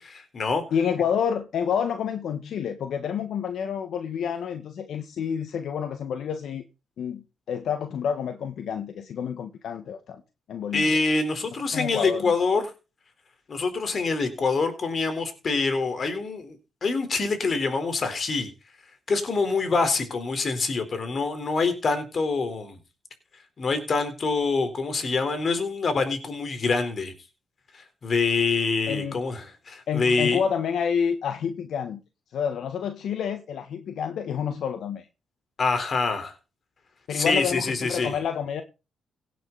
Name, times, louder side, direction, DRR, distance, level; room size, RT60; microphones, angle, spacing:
voice 1, 0.0-0.6 10.7-12.7 13.5-18.5 19.1-22.8 23.6-27.1 27.7-30.4 35.6-36.3 37.1-38.1, left 4 dB, 45° left, 4.0 m, -25 dB
voice 2, 0.7-6.6 7.0-10.2 10.5-11.0 11.7-12.3 28.9-29.2 29.9-32.0 32.3-35.1 37.1-38.6, left 7 dB, 70° left, 1.3 m, -29 dB
17.0 x 9.3 x 4.1 m
cardioid pair, 80°, 0 cm